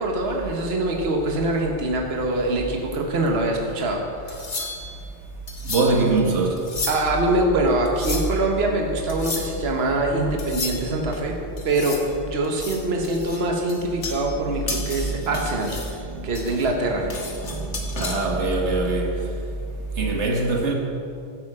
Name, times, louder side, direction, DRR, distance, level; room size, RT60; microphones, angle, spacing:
voice 1, 0.0-4.7 6.9-11.4 11.6-17.1, right 2 dB, 60° right, 1.5 m, -24 dB
sound 1, 4.3-5.0 5.5-6.1 6.6-7.2 7.9-8.4 9.1-9.6 10.4-11.2 11.6-12.1 12.4-14.4 14.7-16.0 16.4-18.1, left 3 dB, 75° left, 1.8 m, -33 dB
voice 2, 5.6-6.6 14.5-15.1 16.0-16.5 17.4-19.5 19.9-20.7, right 3 dB, 75° right, 1.6 m, -24 dB
15.0 x 8.7 x 4.9 m
omnidirectional pair, 1.2 m